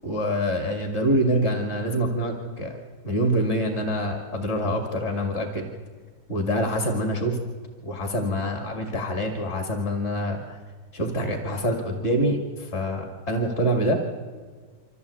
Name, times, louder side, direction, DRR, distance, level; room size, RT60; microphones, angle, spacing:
voice 1, 0.0-2.7 3.0-5.7 6.3-7.4 7.8-10.6 10.9-14.0, equal, 35° left, 3 dB, 2.4 m, -25 dB
25.0 x 15.5 x 8.3 m, 1.5 s
omnidirectional pair, 2.0 m